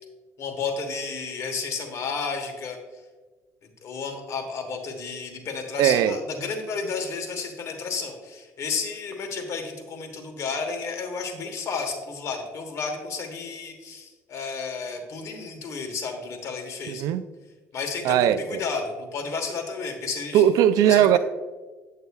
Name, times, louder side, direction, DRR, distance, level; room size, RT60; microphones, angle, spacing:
voice 1, 0.4-2.8 3.6-17.0 17.7-20.4 20.8-21.2, left 4 dB, 55° left, 1.3 m, -32 dB
voice 2, 5.8-6.2 16.9-17.2 18.0-18.6 20.3-21.2, right 10 dB, 75° right, 0.4 m, -19 dB
9.3 x 6.5 x 2.3 m
supercardioid pair, 90°, 6 cm